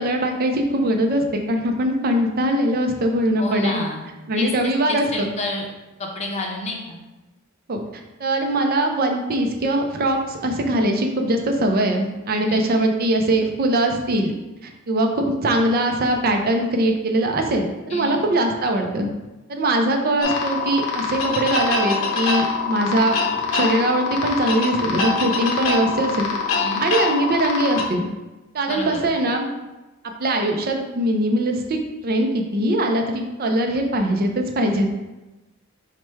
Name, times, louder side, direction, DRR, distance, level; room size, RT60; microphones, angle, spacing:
voice 1, 0.0-3.8 4.3-5.3 7.7-14.3 14.6-19.1 19.5-23.2 23.5-26.3 26.8-28.1 28.5-29.5 30.2-34.9, right 1 dB, 45° right, 3 dB, 0.5 m, -21 dB
voice 2, 3.4-4.0 4.3-5.7 6.0-7.0 12.4-12.7 17.9-18.2 26.6-26.9 28.7-29.0, left 2 dB, 30° left, 0 dB, 0.7 m, -29 dB
sound 1, 20.2-27.8, left 4 dB, 85° left, 0.7 m, -24 dB
4.8 x 2.2 x 4.3 m, 1.1 s
head